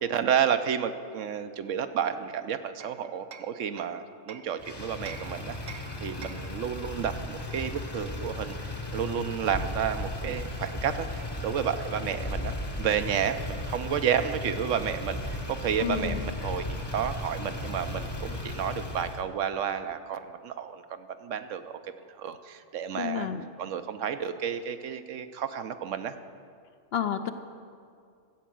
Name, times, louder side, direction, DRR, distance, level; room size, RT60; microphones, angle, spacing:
voice 1, 0.0-8.5 8.9-21.7 22.2-23.3 23.6-26.2, right 8 dB, 80° right, 10 dB, 1.0 m, -31 dB
Hammer, 2.0-4.6 5.1-6.6, right 7 dB, 55° right, 0.7 m, -47 dB
Motor vehicle (road), 4.6-19.2, left 2 dB, 20° left, 1.0 m, -36 dB
voice 2, 15.8-16.2 23.0-23.4 26.9-27.3, left 9 dB, 60° left, 9 dB, 0.8 m, -30 dB
14.0 x 8.1 x 7.6 m, 2.2 s
omnidirectional pair, 1.3 m